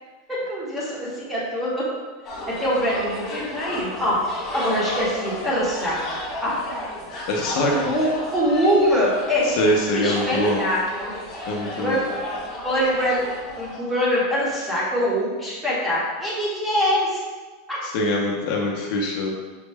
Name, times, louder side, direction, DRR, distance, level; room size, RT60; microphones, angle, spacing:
voice 1, 0.3-1.9 2.5-4.2 4.5-6.6 7.7-9.6 9.9-11.1 11.8-12.2 12.6-17.2 17.7-17.8, equal, 5° right, -7 dB, 0.9 m, -24 dB
sound 1, 2.2-13.8, left 1 dB, 25° left, 1.0 m, -33 dB
voice 2, 7.3-7.7 9.4-10.6 11.5-12.0 17.8-19.3, left 1 dB, 45° left, -1 dB, 0.5 m, -23 dB
5.2 x 2.1 x 3.3 m, 1.3 s
supercardioid pair, 175°, 0 cm